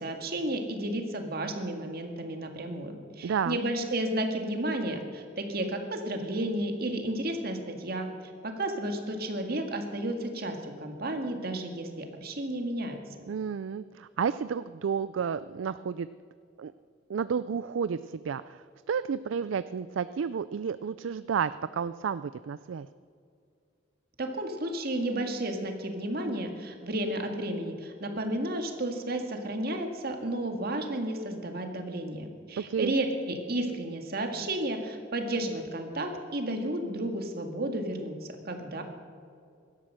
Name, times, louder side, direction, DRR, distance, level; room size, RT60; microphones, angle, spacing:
voice 1, 0.0-8.1 8.4-13.0 24.2-38.2 38.5-38.8, right 1 dB, 55° right, 5 dB, 1.9 m, -32 dB
voice 2, 3.2-3.6 13.3-16.1 16.6-16.7 17.1-22.9 32.6-32.9, right 7 dB, 85° right, 14 dB, 0.4 m, -31 dB
17.0 x 12.5 x 6.4 m, 2.4 s
head